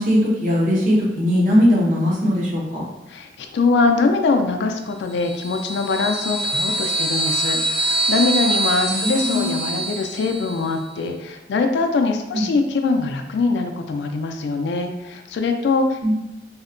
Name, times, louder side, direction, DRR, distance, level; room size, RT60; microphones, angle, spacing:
voice 1, 0.0-2.8 8.9-9.6 12.3-12.5 16.0-16.1, equal, 45° right, -4 dB, 0.6 m, -19 dB
voice 2, 3.1-16.0, left 3 dB, 75° left, 5 dB, 0.3 m, -22 dB
sound 1, 5.2-10.7, right 2 dB, ahead, 0.5 m, -24 dB
2.7 x 2.1 x 2.5 m, 1.0 s
head